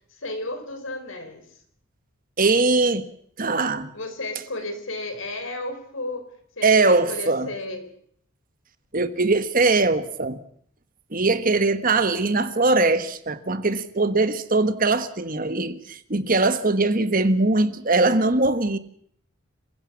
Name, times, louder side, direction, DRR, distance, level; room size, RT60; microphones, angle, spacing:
voice 1, 0.1-1.6 3.9-6.3 6.6-7.9, left 2 dB, 65° left, 4.4 m, -33 dB
voice 2, 2.4-3.1 3.4-3.9 6.6-7.5 8.9-10.4 11.1-18.8, right 3 dB, 40° right, 1.4 m, -21 dB
27.0 x 16.5 x 7.3 m
head